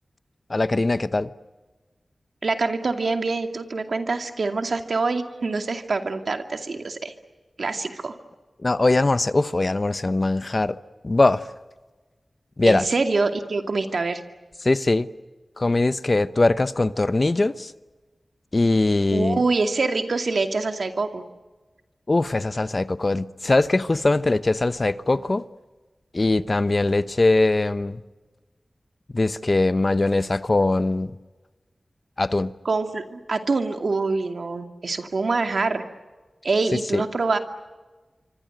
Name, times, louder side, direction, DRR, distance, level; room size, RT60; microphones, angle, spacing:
voice 1, 0.5-1.3 8.6-10.8 11.0-11.5 12.6-12.9 14.6-15.1 15.6-17.7 18.5-19.4 22.1-25.4 26.1-28.0 29.1-31.1 32.2-32.5 36.9-37.0, left 2 dB, 45° left, 1.0 m, -21 dB
voice 2, 2.4-7.1 7.6-8.2 12.6-14.2 19.1-21.2 32.6-35.8 36.4-37.4, right 3 dB, 75° right, 2.4 m, -25 dB
26.5 x 24.5 x 8.0 m
cardioid pair, 50°, 0 cm